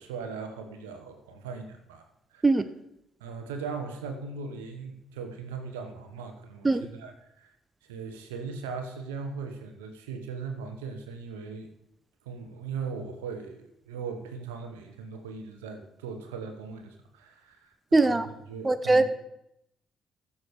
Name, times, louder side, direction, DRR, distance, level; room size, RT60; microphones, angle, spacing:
voice 1, 0.0-2.6 3.2-7.5 7.9-11.7 12.2-19.1, right 5 dB, 85° right, 6 dB, 1.3 m, -39 dB
voice 2, 17.9-18.3 18.6-19.1, right 2 dB, 25° right, 12 dB, 0.9 m, -21 dB
14.0 x 7.1 x 5.0 m, 0.82 s
hypercardioid pair, 45°, 0 cm